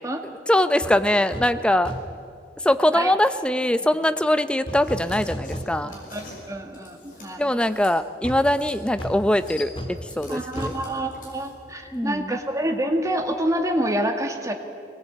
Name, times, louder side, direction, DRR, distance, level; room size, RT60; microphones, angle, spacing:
voice 1, 0.5-1.9 2.6-5.9 7.4-10.7 11.9-12.4, left 1 dB, 5° left, 11 dB, 0.7 m, -22 dB
sound 1, 0.8-1.0 1.3-1.6 1.9-2.3 4.7-6.1 6.5-6.6 8.2-11.9 12.2-12.3, equal, 35° left, 2.9 m, -35 dB
sound 2, 4.8-7.9 8.4-8.8 9.1-11.7, left 2 dB, 55° left, 6.4 m, -45 dB
voice 2, 5.8-7.5 10.3-14.5, right 1 dB, 20° right, 4 dB, 2.0 m, -27 dB
22.5 x 19.5 x 8.6 m, 2.3 s
head